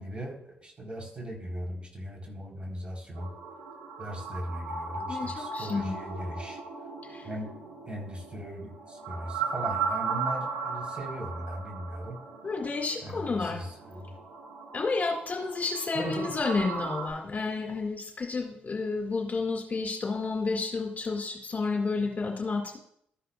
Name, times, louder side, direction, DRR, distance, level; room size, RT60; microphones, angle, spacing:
voice 1, 0.0-3.3 4.0-6.6 7.2-7.5 7.9-12.2 13.0-14.0 15.9-16.3, equal, 25° right, 0 dB, 4.4 m, -38 dB
sound 1, 3.1-17.1, right 5 dB, 85° right, 4.2 m, -37 dB
voice 2, 5.1-5.9 7.1-7.3 12.4-13.6 14.7-22.8, left 4 dB, 40° left, 1 dB, 2.2 m, -31 dB
13.0 x 10.0 x 2.5 m, 0.71 s
hypercardioid pair, 40°, 4 cm